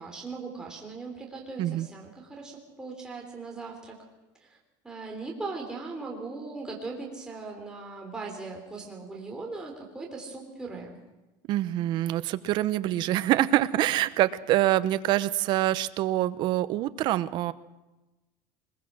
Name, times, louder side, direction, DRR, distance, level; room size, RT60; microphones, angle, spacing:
voice 1, 0.0-4.0 4.4-4.6 4.8-11.0, right 3 dB, 5° right, -1 dB, 3.5 m, -39 dB
voice 2, 11.5-17.5, right 14 dB, 50° right, 14 dB, 0.8 m, -25 dB
21.5 x 21.5 x 6.3 m, 1.1 s
cardioid pair, 155°, 10 cm